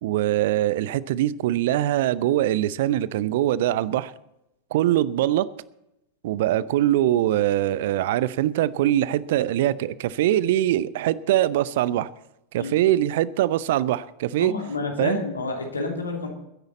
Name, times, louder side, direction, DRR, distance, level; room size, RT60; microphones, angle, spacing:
voice 1, 0.0-4.1 4.7-5.5 6.2-12.1 12.5-14.5 15.0-15.2, right 13 dB, 55° right, 0.6 m, -22 dB
voice 2, 14.4-16.3, left 3 dB, 75° left, 2.8 m, -29 dB
21.5 x 10.5 x 4.2 m
figure-of-eight pair, 90°, 0 cm